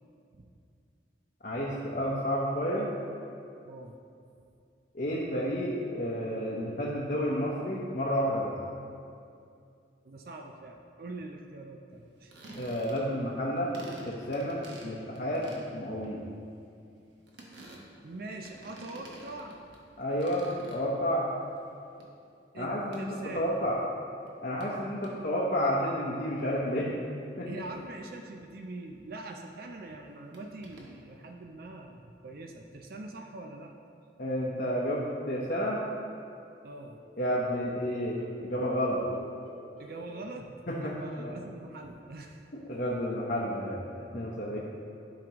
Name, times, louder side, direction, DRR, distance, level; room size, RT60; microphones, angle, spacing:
voice 1, 1.4-2.9 4.9-8.5 12.6-13.7 14.1-16.2 20.0-20.4 20.7-21.3 22.6-23.1 23.3-23.8 24.4-26.9 27.4-27.5 34.2-35.8 37.2-39.0 40.7-41.3 42.7-43.8 44.1-44.6, equal, 45° left, -6 dB, 0.8 m, -31 dB
voice 2, 3.7-4.0 10.0-12.3 18.0-19.6 22.5-22.7 23.0-23.5 27.4-33.7 36.6-37.0 39.8-40.5 40.8-42.4 44.5-44.6, right 2 dB, 50° right, 3 dB, 0.5 m, -43 dB
sound 1, 12.2-13.3 13.6-19.9 20.2-21.2 21.5-22.0 22.9-23.0 24.3-24.4 24.6-24.7 25.0-25.1 30.3-30.9, right 1 dB, 70° right, 1.1 m, -49 dB
sound 2, 36.9-37.8 38.2-40.4 40.7-41.3, left 1 dB, 5° right, 1.5 m, -51 dB
12.5 x 5.0 x 2.9 m, 2.5 s
head